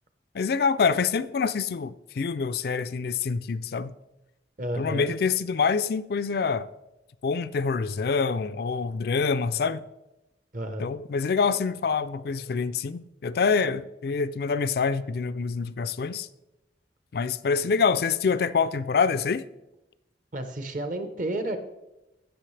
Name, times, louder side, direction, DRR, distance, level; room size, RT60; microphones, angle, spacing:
voice 1, 0.3-3.9 4.7-6.7 7.2-9.8 10.8-16.3 17.1-19.4, left 5 dB, 60° left, 0.4 m, -26 dB
voice 2, 4.6-5.1 10.5-10.9 20.3-21.6, right 1 dB, 45° right, 0.9 m, -31 dB
16.0 x 6.3 x 3.3 m
head